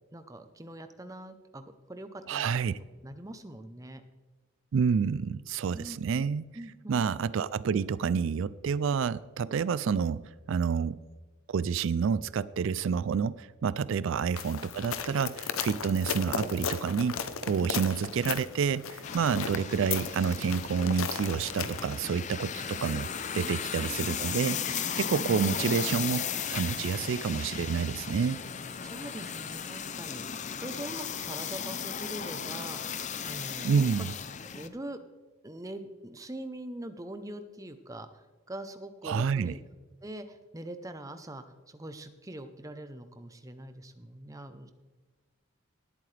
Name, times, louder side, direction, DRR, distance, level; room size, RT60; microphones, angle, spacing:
voice 1, 0.1-2.6 3.0-4.0 5.7-6.3 6.5-7.1 13.9-14.0 17.6-17.7 23.3-24.0 25.2-25.3 28.8-30.2 30.5-32.8 33.2-33.9 34.4-35.0 35.4-39.6 40.0-44.7, right 1 dB, 15° right, 9 dB, 0.7 m, -43 dB
voice 2, 2.3-2.8 4.7-6.4 6.9-10.2 10.5-11.0 11.5-26.2 26.5-28.4 33.6-34.1 39.0-39.5, right 6 dB, 60° right, 18 dB, 0.3 m, -29 dB
sound 1, 14.4-22.0, left 6 dB, 70° left, 0.8 m, -36 dB
sound 2, 19.0-34.7, left 7 dB, 35° left, 0.5 m, -36 dB
18.5 x 8.5 x 3.3 m, 1.3 s
head